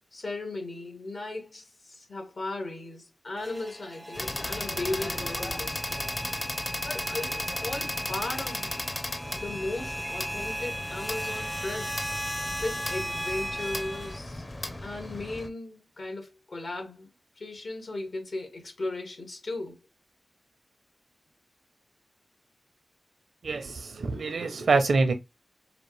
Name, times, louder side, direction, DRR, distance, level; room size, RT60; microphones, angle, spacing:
voice 1, 0.1-6.0 6.8-8.8 9.2-12.0 12.6-14.4 14.8-19.8, left 2 dB, 75° left, 1.8 m, -36 dB
sound 1, 3.4-14.2, equal, ahead, 0.4 m, -36 dB
sound 2, 4.2-15.5, left 1 dB, 35° left, 0.7 m, -36 dB
voice 2, 23.4-25.1, right 3 dB, 90° right, 0.7 m, -25 dB
4.9 x 2.5 x 3.3 m
wide cardioid pair, 60°, 0 cm